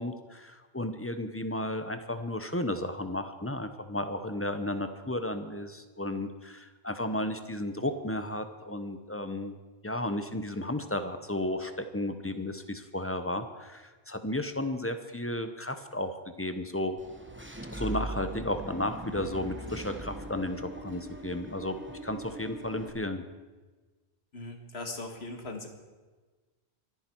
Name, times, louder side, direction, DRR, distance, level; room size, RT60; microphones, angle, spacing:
voice 1, 0.0-9.6 9.8-17.0 17.7-23.2, left 1 dB, 15° left, 9 dB, 0.8 m, -33 dB
Engine / Mechanisms, 17.0-22.9, right 1 dB, 10° right, 1.0 m, -41 dB
voice 2, 24.3-25.7, left 2 dB, 75° left, 4 dB, 2.0 m, -39 dB
24.0 x 9.8 x 4.6 m, 1.3 s
omnidirectional pair, 1.1 m